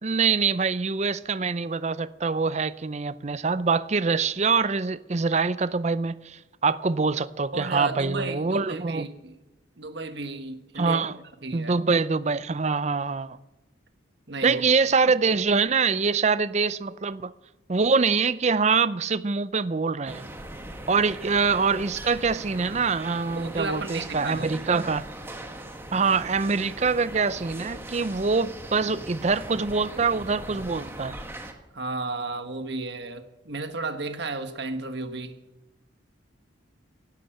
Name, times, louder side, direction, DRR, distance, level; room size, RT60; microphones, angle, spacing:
voice 1, 0.0-9.1 10.8-11.2 11.5-13.4 14.4-17.3 17.7-20.3 20.9-25.0 25.9-31.2, right 4 dB, 35° right, 0.5 m, -24 dB
voice 2, 7.5-9.3 9.8-11.0 11.4-11.7 14.3-14.6 23.3-24.7 31.7-35.4, right 3 dB, 55° right, 1.4 m, -33 dB
sound 1, 20.0-31.5, right 1 dB, 10° right, 1.3 m, -40 dB
17.0 x 10.5 x 7.8 m
head